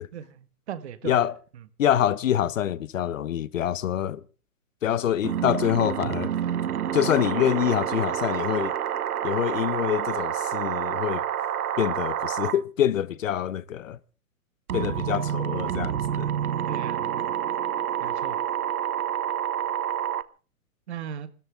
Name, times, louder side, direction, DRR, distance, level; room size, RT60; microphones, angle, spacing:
voice 1, 0.0-1.3 4.9-5.0 16.7-17.3 18.0-18.4 20.9-21.3, right 9 dB, 45° right, 1.6 m, -38 dB
voice 2, 1.0-1.4 1.8-4.2 4.8-6.3 6.9-8.7 9.2-11.3 11.8-14.0 14.7-16.3, left 10 dB, 60° left, 0.9 m, -25 dB
sound 1, 5.2-12.6 14.7-20.2, right 10 dB, 80° right, 1.1 m, -28 dB
27.0 x 13.5 x 3.5 m
hypercardioid pair, 170°, 44 cm